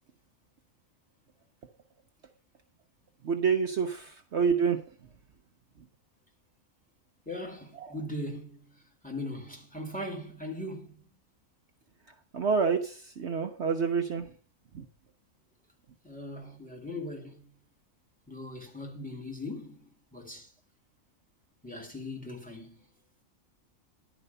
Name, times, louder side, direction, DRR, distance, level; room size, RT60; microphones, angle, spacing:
voice 1, 3.2-4.8 7.8-7.9 12.3-14.3 14.7-14.8, right 6 dB, 60° right, 1.0 m, -28 dB
voice 2, 7.3-8.6 9.0-10.9 16.0-17.4 18.3-19.8 20.1-20.5 21.6-22.8, left 1 dB, 5° left, 2.1 m, -39 dB
11.0 x 5.0 x 6.6 m
omnidirectional pair, 1.4 m